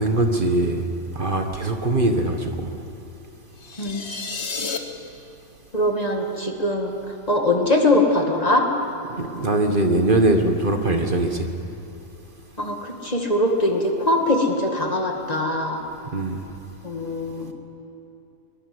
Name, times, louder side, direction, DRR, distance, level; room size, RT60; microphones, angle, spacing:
voice 1, 0.0-2.7 9.2-11.5 16.1-16.5, right 2 dB, 45° right, 5 dB, 1.5 m, -22 dB
sound 1, 3.6-4.8, left 5 dB, 60° left, 1.7 m, -31 dB
voice 2, 5.7-6.9 7.3-8.7 12.6-15.8 16.8-17.5, left 1 dB, 30° left, 2 dB, 2.3 m, -22 dB
22.5 x 21.0 x 7.9 m, 2.8 s
omnidirectional pair, 1.3 m